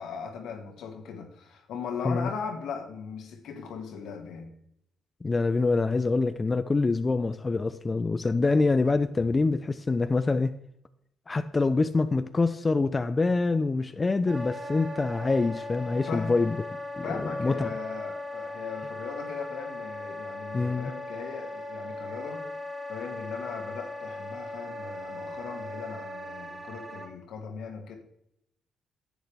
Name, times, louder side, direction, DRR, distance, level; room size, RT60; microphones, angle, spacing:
voice 1, 0.0-4.5 15.9-16.5 17.0-22.5 22.9-28.0, left 6 dB, 80° left, 2.0 m, -38 dB
voice 2, 5.2-10.6 11.3-16.6 17.0-17.7 20.5-20.9, left 3 dB, 25° left, 0.4 m, -25 dB
Wind instrument woodwind instrument, 14.3-27.1, left 1 dB, 20° right, 4.4 m, -38 dB
10.5 x 8.2 x 3.5 m
cardioid pair, 90°, 0 cm